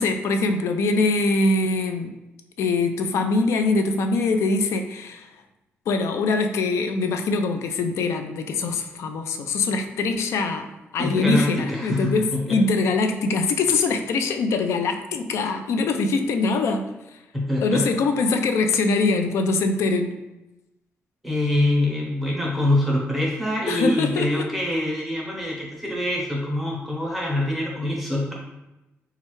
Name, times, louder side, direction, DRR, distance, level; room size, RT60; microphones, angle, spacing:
voice 1, 0.0-2.1 2.6-5.3 5.9-17.2 17.6-20.2 23.7-24.5, left 3 dB, 85° left, 6 dB, 0.4 m, -23 dB
voice 2, 11.0-12.6 17.3-17.9 21.2-28.3, left 1 dB, ahead, -4 dB, 0.8 m, -25 dB
4.2 x 2.4 x 3.0 m, 0.98 s
wide cardioid pair, 155°, 5 cm